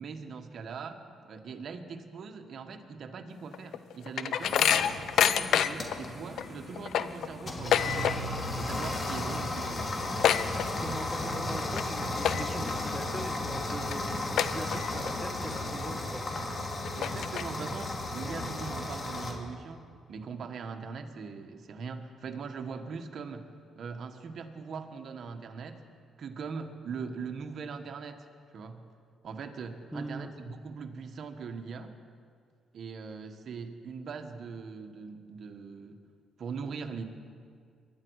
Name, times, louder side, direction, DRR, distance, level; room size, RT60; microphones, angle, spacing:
voice 1, 0.0-8.2 8.5-9.9 16.9-19.8 20.1-23.5 23.7-25.8 26.2-28.3 28.5-28.8 29.2-31.9 32.7-36.0 36.4-37.0, right 5 dB, 55° right, 6 dB, 1.4 m, -41 dB
sound 1, 3.5-6.0 6.4-6.5 6.8-8.5 8.7-9.1 9.4-9.5 9.7-11.1 11.6-11.8 12.2-12.7 13.2-13.3 13.9-14.0 14.4-15.1 15.5-15.6 16.4-16.5 16.8-17.7, left 9 dB, 75° left, 0.6 m, -27 dB
sound 2, 4.4-19.3, left 2 dB, 35° left, 2.6 m, -35 dB
voice 2, 10.8-16.3 29.9-30.4, right 1 dB, 5° left, 4 dB, 1.9 m, -41 dB
23.5 x 11.5 x 4.8 m, 2.2 s
cardioid pair, 90°, 0 cm